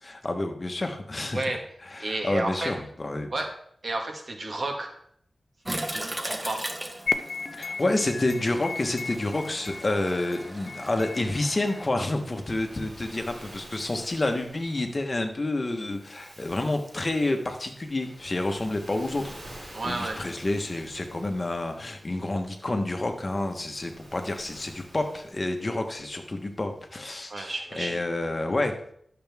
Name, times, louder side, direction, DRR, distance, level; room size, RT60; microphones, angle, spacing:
voice 1, 0.0-1.5 1.9-3.3 7.5-28.9, left 2 dB, 35° left, 5 dB, 1.2 m, -29 dB
voice 2, 1.3-1.6 2.0-2.8 3.3-3.5 3.8-4.9 5.9-6.6 19.7-20.2 27.3-28.0, right 2 dB, 50° right, 3 dB, 1.6 m, -31 dB
Toilet flush, 5.6-11.9, right 1 dB, 20° right, 1.1 m, -38 dB
sound 1, 7.1-12.1, left 5 dB, 85° left, 0.5 m, -35 dB
Waves surf, 11.5-27.0, right 1 dB, 80° right, 4.1 m, -49 dB
11.5 x 6.9 x 3.6 m, 0.68 s
wide cardioid pair, 90°, 0 cm